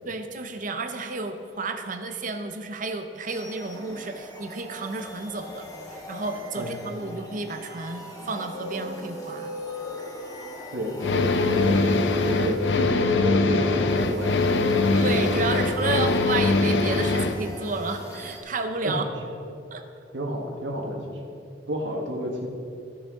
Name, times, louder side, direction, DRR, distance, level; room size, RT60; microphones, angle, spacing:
voice 1, 0.1-9.5 14.9-19.1 19.7-19.8, right 3 dB, 45° right, 7 dB, 0.7 m, -32 dB
sound 1, 3.3-18.4, equal, 20° left, 1.4 m, -42 dB
Guitar, 8.0-10.5 11.3-16.7, left 2 dB, 45° left, 1.8 m, -37 dB
voice 2, 10.7-11.9 12.2-14.8 18.8-19.0 20.1-21.2 21.7-22.5, equal, 80° right, 1 dB, 1.5 m, -30 dB
sound 2, 11.0-17.4, left 3 dB, 75° left, 0.6 m, -22 dB
14.0 x 6.5 x 3.7 m, 2.6 s
head